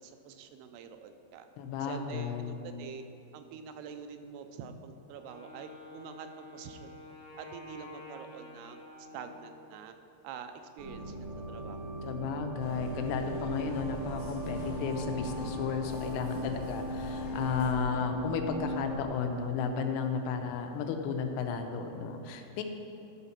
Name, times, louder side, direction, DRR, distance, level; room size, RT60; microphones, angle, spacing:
voice 1, 0.0-1.5 1.8-3.0 3.3-6.9 7.4-10.0 10.2-11.8 12.1-12.2 22.3-22.4, right 6 dB, 85° right, 8 dB, 2.6 m, -46 dB
voice 2, 1.6-2.6 12.0-22.6, left 5 dB, 85° left, 5 dB, 2.7 m, -34 dB
Wind instrument woodwind instrument, 5.1-9.9, left 2 dB, 45° left, 2.5 m, -50 dB
sound 1, 10.8-19.0, equal, 70° right, 1.3 m, -38 dB
sound 2, 12.6-17.7, left 1 dB, 65° left, 2.6 m, -44 dB
12.5 x 4.1 x 5.8 m, 2.7 s
omnidirectional pair, 4.6 m